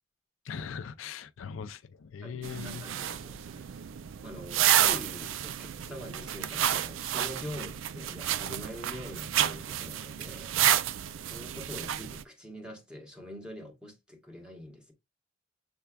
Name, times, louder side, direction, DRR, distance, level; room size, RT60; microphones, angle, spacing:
voice 1, 0.4-2.8 11.1-11.2, left 6 dB, 75° left, 0.4 m, -40 dB
voice 2, 2.2-3.9 4.2-10.6 11.3-14.9, equal, 5° right, 1.4 m, -44 dB
sound 1, 2.4-12.2, right 11 dB, 70° right, 0.4 m, -30 dB
6.9 x 3.3 x 2.3 m
head